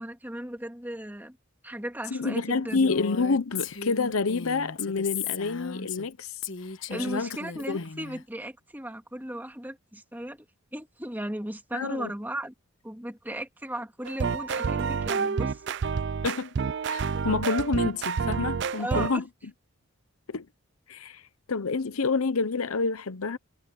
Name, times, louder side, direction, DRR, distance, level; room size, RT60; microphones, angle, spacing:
voice 1, 0.0-1.4 1.6-2.8 6.9-10.5 10.7-12.5 12.8-15.8 18.8-19.3, right 1 dB, 10° right, 2.2 m, -36 dB
voice 2, 2.1-6.3 6.9-7.3 7.6-7.8 11.7-12.1 16.2-16.5 16.9-19.2 20.3-20.5 20.9-21.2 21.5-23.4, left 4 dB, 80° left, 0.8 m, -28 dB
Female speech woman speaking, 2.7-6.1 6.4-8.2, left 6 dB, 60° left, 1.4 m, -36 dB
sound 1, 14.1-19.2, right 5 dB, 55° right, 0.4 m, -29 dB
head